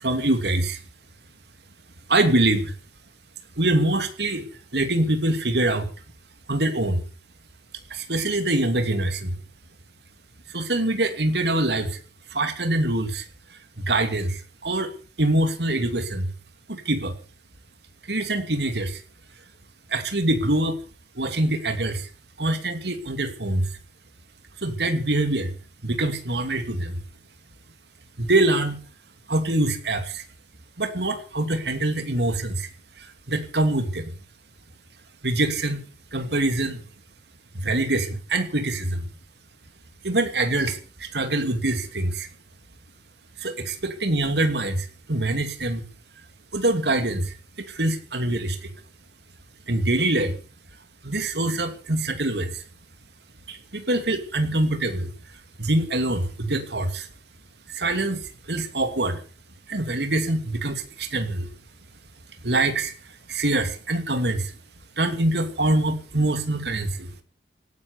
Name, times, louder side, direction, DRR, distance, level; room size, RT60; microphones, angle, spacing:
voice 1, 0.0-0.8 2.1-2.7 3.6-4.5 4.7-5.9 6.5-7.0 7.9-9.3 10.5-12.0 12.3-13.2 13.5-14.9 15.2-16.3 16.7-17.1 18.1-19.0 19.9-20.8 21.1-22.1 22.4-23.7 24.6-25.5 25.8-27.0 28.2-28.8 29.3-30.2 30.8-32.7 33.0-34.1 35.2-35.8 36.1-36.8 37.5-39.0 40.0-42.3 43.4-45.8 46.5-48.7 49.7-50.4 51.0-52.6 53.5-55.1 55.6-57.1 57.7-59.2 59.7-61.5 62.4-62.9 63.3-64.5 65.0-67.1, right 2 dB, 65° right, 8 dB, 2.7 m, -24 dB
18.0 x 10.5 x 6.9 m, 0.38 s
head